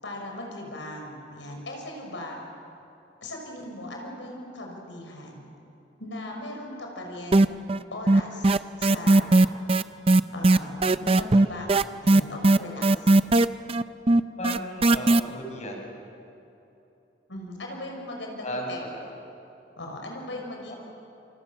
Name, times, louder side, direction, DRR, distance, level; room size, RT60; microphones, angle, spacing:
voice 1, 0.0-2.4 3.2-5.5 6.0-7.6 7.9-9.6 10.3-13.1 17.3-19.1 19.8-20.8, left 1 dB, 85° left, 1 dB, 5.9 m, -38 dB
sound 1, 7.3-7.8 8.1-15.2, right 2 dB, 30° right, 0.6 m, -18 dB
voice 2, 14.4-15.8 18.4-18.7 20.7-20.8, equal, 40° left, 0 dB, 5.8 m, -34 dB
28.0 x 27.0 x 7.4 m, 3.0 s
head